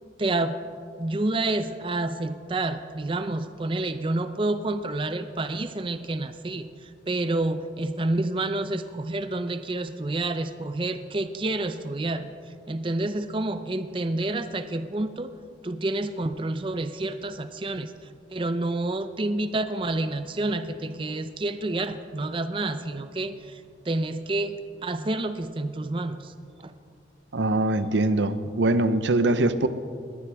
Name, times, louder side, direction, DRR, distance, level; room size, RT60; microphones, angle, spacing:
voice 1, 0.2-0.6 1.0-12.3 12.7-15.3 15.6-17.9 18.3-24.6 24.8-26.3 26.6-26.7, right 2 dB, 30° right, 10 dB, 0.5 m, -29 dB
voice 2, 27.3-29.7, right 2 dB, 85° right, 12 dB, 0.7 m, -22 dB
21.0 x 15.5 x 3.5 m, 2.2 s
head